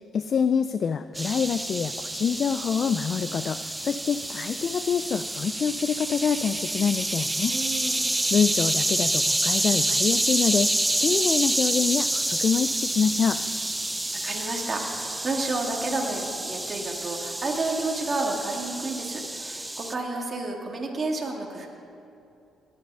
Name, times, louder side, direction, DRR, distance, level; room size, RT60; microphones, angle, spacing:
voice 1, 0.0-7.6 8.3-13.4, left 6 dB, 55° left, 11 dB, 0.3 m, -26 dB
sound 1, 1.1-19.9, right 1 dB, 10° right, 0.6 m, -28 dB
voice 2, 7.5-8.0 14.2-21.7, right 2 dB, 35° right, 0 dB, 2.0 m, -30 dB
18.5 x 8.7 x 5.4 m, 2.7 s
cardioid pair, 90°, 0 cm